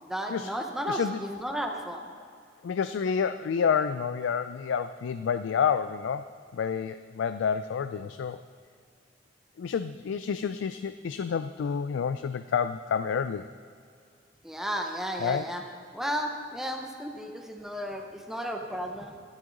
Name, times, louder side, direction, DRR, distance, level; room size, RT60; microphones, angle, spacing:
voice 1, 0.0-2.1 14.4-15.6 15.9-19.2, equal, ahead, 2 dB, 0.7 m, -33 dB
voice 2, 0.9-1.2 2.6-6.3 6.5-8.4 9.6-13.5 15.2-15.4, left 6 dB, 90° left, 11 dB, 0.3 m, -29 dB
13.0 x 10.5 x 3.9 m, 2.2 s
head